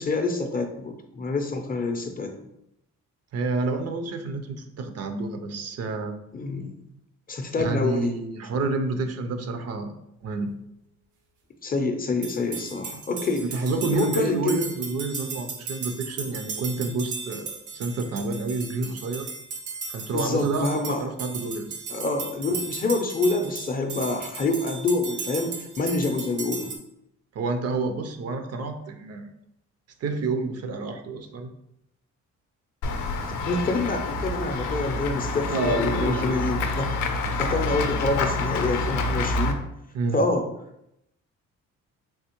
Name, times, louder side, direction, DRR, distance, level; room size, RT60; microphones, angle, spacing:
voice 1, 0.0-2.4 6.3-6.9 7.3-8.2 11.6-13.5 13.9-14.6 20.1-21.1 21.9-26.7 33.4-37.0 37.4-39.7 40.1-40.5, left 3 dB, 30° left, 5 dB, 0.5 m, -27 dB
voice 2, 3.3-6.1 7.6-9.9 10.2-10.5 12.9-13.0 13.4-19.3 19.9-21.8 27.3-29.2 30.0-31.5 35.5-36.6 39.9-40.2, right 3 dB, 55° right, 7 dB, 0.5 m, -29 dB
sound 1, 12.2-26.8, right 5 dB, 80° right, 0.8 m, -36 dB
Run / Walk footsteps / Bell, 32.8-39.5, left 2 dB, 90° left, 0.5 m, -27 dB
3.5 x 2.8 x 2.9 m, 0.82 s
cardioid pair, 90°, 30 cm